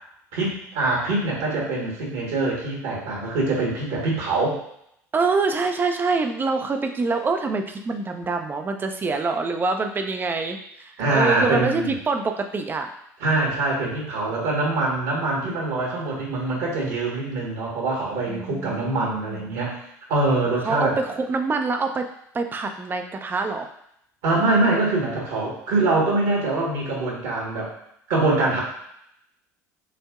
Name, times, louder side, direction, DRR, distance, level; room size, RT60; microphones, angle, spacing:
voice 1, 0.3-4.6 11.0-12.0 13.2-19.8 20.1-21.0 24.2-27.7 28.1-28.6, right 2 dB, 60° right, -2 dB, 1.5 m, -24 dB
voice 2, 5.1-12.9 18.3-19.5 20.6-22.0 22.3-23.7, right 4 dB, 20° right, 5 dB, 0.5 m, -25 dB
7.3 x 2.6 x 2.5 m, 0.74 s
figure-of-eight pair, 65°, 9 cm